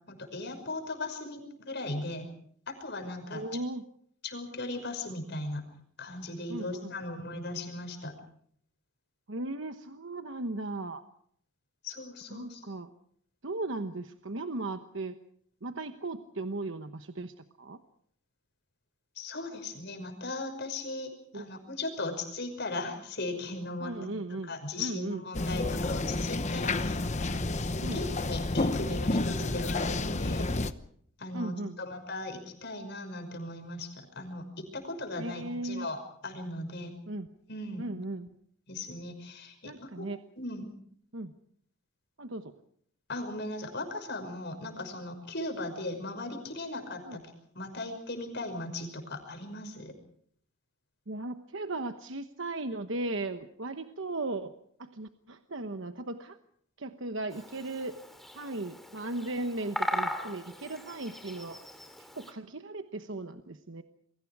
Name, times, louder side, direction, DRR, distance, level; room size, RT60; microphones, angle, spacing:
voice 1, 0.1-2.2 2.7-3.6 4.2-5.6 6.0-8.1 11.8-12.6 19.2-27.5 27.9-30.6 31.2-36.9 37.5-37.8 38.7-40.1 40.4-40.7 43.1-47.2 47.5-49.9, left 2 dB, 50° left, 6 dB, 5.7 m, -38 dB
voice 2, 3.3-3.8 6.5-6.9 9.3-11.0 12.3-12.9 13.4-15.2 15.6-17.8 21.3-21.5 23.8-25.2 27.8-28.0 31.3-31.8 35.2-35.9 37.1-37.3 37.8-38.3 39.6-40.2 41.1-41.3 42.2-42.5 47.0-47.2 51.1-54.5 54.8-56.4 56.8-57.9 58.3-61.6 62.0-63.8, right 2 dB, 60° right, 8 dB, 1.1 m, -37 dB
sound 1, 25.3-30.7, left 2 dB, 30° left, 0.9 m, -30 dB
Bird vocalization bird call bird song, 57.3-62.3, equal, ahead, 2.8 m, -38 dB
28.5 x 23.5 x 4.8 m, 0.65 s
head